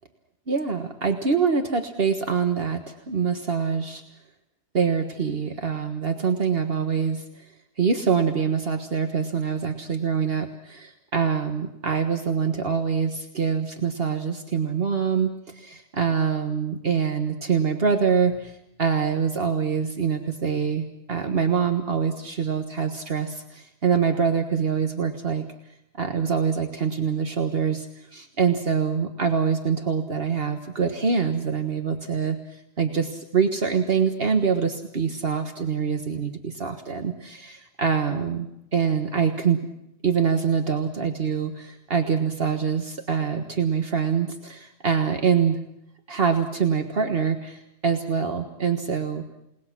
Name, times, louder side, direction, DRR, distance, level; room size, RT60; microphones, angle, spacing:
voice 1, 0.5-2.8 3.1-4.0 4.7-7.2 7.8-25.4 26.0-27.9 28.1-32.4 32.8-39.6 40.0-45.6 46.1-49.2, right 6 dB, 60° right, 5 dB, 1.7 m, -25 dB
29.0 x 19.5 x 6.1 m, 0.80 s
omnidirectional pair, 1.1 m